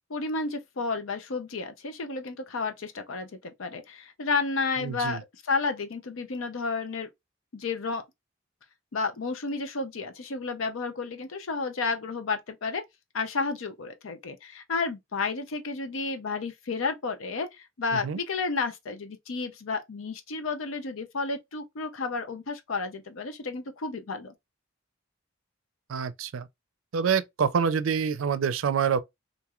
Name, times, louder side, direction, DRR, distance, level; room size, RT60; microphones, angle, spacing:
voice 1, 0.1-7.1 7.5-8.0 8.9-12.8 13.1-24.3, left 4 dB, 90° left, 0.6 m, -31 dB
voice 2, 4.8-5.2 18.0-18.2 25.9-26.5 26.9-29.0, right 6 dB, 85° right, 0.4 m, -26 dB
2.6 x 2.3 x 2.9 m
head